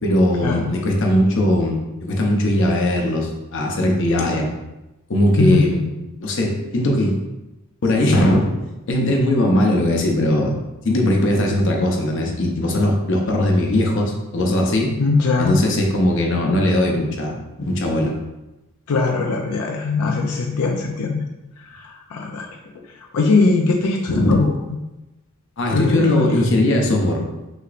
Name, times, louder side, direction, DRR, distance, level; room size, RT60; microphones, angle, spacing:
voice 1, 0.0-4.5 5.1-5.8 6.2-7.2 7.8-8.5 8.9-10.5 10.8-14.9 15.4-18.1 24.1-24.3 25.6-27.2, left 1 dB, 55° left, 0 dB, 0.8 m, -19 dB
voice 2, 5.4-5.7 15.0-15.6 18.9-21.2 21.6-22.5 22.7-24.6 25.7-26.4, left 3 dB, 90° left, 1 dB, 0.5 m, -20 dB
6.3 x 2.9 x 2.5 m, 1.0 s
head